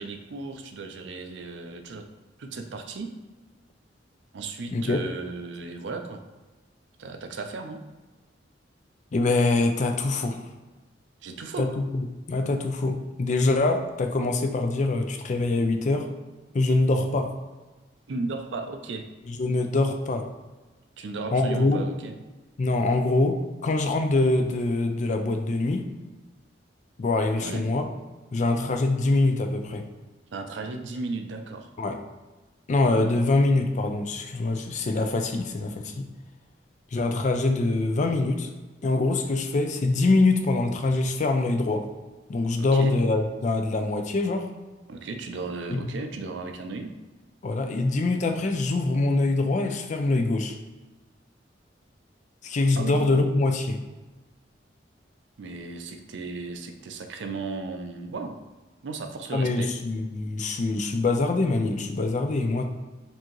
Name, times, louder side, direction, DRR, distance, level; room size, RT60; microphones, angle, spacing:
voice 1, 0.0-2.1 2.4-3.1 4.3-6.2 7.0-7.8 11.2-11.7 18.1-19.1 21.0-22.1 27.4-27.7 30.3-31.7 42.6-43.0 44.9-46.9 52.8-53.1 55.4-58.4 58.8-59.7, right 3 dB, 75° right, 6 dB, 0.5 m, -35 dB
voice 2, 4.7-5.0 9.1-10.4 11.6-16.1 16.5-17.3 19.3-20.3 21.3-21.9 22.6-25.9 27.0-27.9 28.3-29.9 31.8-32.0 32.7-36.1 36.9-38.5 38.8-41.9 42.3-44.5 45.7-45.9 47.4-50.5 52.4-53.8 59.3-62.6, left 2 dB, 40° left, 5 dB, 0.4 m, -24 dB
4.5 x 2.8 x 3.0 m, 1.2 s
head